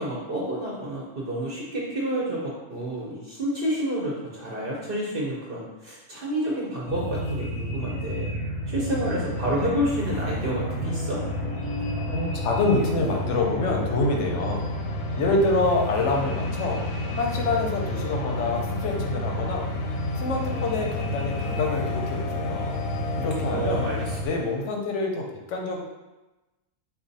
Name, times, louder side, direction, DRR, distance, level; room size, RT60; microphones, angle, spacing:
voice 1, 0.0-8.3 8.7-11.2 23.4-24.2, right 1 dB, 50° right, -4 dB, 0.7 m, -29 dB
sound 1, 6.9-24.3, equal, 45° left, 0.4 m, -31 dB
sound 2, 7.5-24.7, left 4 dB, 85° left, 1.2 m, -35 dB
voice 2, 12.1-14.7 15.2-16.8 17.1-19.7 20.2-22.8 23.2-23.9 24.2-25.8, left 3 dB, 60° left, 0 dB, 0.9 m, -26 dB
4.1 x 2.4 x 4.0 m, 1.1 s
omnidirectional pair, 1.6 m